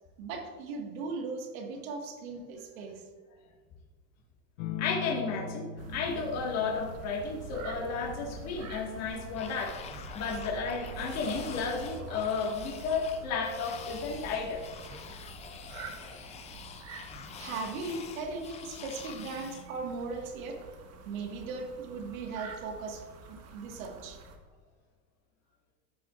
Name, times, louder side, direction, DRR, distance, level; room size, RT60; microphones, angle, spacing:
voice 1, 0.2-3.0 17.4-20.6 21.1-23.0 23.3-24.2, right 4 dB, 85° right, 2 dB, 1.8 m, -38 dB
sound 1, 4.6-13.7 15.1-15.7, left 6 dB, 70° left, 0.9 m, -44 dB
voice 2, 4.8-9.8 10.1-14.6, left 5 dB, 40° left, -1 dB, 1.8 m, -33 dB
sound 2, 5.8-24.4, right 3 dB, 40° right, 1.2 m, -47 dB
sound 3, 9.3-19.7, left 7 dB, 15° left, 0.4 m, -46 dB
14.5 x 6.0 x 2.5 m, 1.4 s
supercardioid pair, 140°, 40 cm